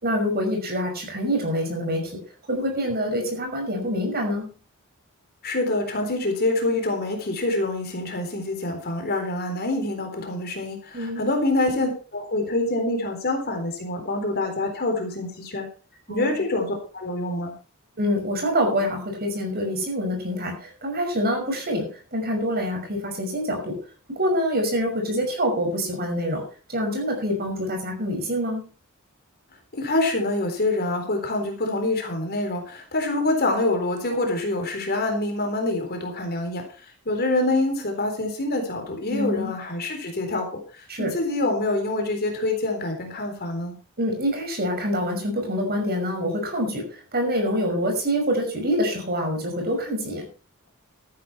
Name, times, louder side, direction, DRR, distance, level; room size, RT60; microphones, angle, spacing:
voice 1, 0.0-2.1 2.5-4.5 10.9-11.2 16.1-16.4 18.0-23.8 24.1-26.4 26.7-28.7 39.1-39.5 40.9-41.1 44.0-50.2, equal, 45° right, 3 dB, 5.8 m, -26 dB
voice 2, 5.4-15.7 16.1-17.5 29.7-36.7 37.1-43.7, left 2 dB, 45° left, 4 dB, 3.9 m, -26 dB
13.5 x 11.0 x 4.4 m, 0.36 s
head